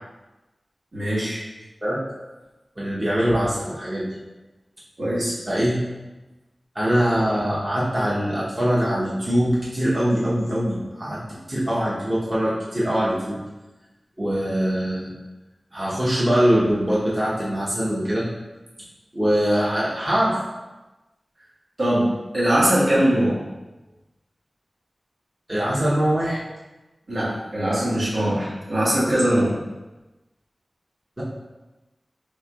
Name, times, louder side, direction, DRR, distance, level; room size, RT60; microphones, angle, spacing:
voice 1, 0.9-1.4 5.0-5.3 21.8-23.4 27.1-29.6, right 1 dB, 75° right, -8 dB, 1.4 m, -21 dB
voice 2, 2.8-4.1 5.5-5.8 6.7-11.2 11.5-13.4 14.2-15.1 15.7-18.3 19.1-20.4 25.5-26.4 31.2-31.3, equal, 35° right, -7 dB, 0.9 m, -22 dB
4.4 x 3.5 x 2.3 m, 1.1 s
wide cardioid pair, 60°, 0 cm